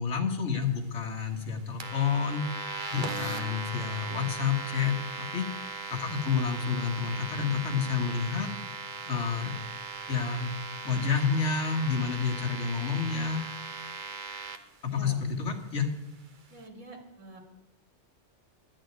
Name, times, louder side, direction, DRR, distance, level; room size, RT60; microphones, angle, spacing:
voice 1, 0.0-2.4 2.9-5.5 5.9-8.5 9.1-9.5 10.1-10.5 10.8-13.4 14.8-15.9, left 6 dB, 70° left, 3 dB, 1.7 m, -29 dB
sound 1, 1.8-14.6, right 3 dB, 45° right, 1.1 m, -38 dB
voice 2, 14.9-15.7 16.5-17.4, right 1 dB, 85° right, 1 dB, 2.6 m, -48 dB
11.5 x 6.3 x 9.2 m, 0.95 s
omnidirectional pair, 1.3 m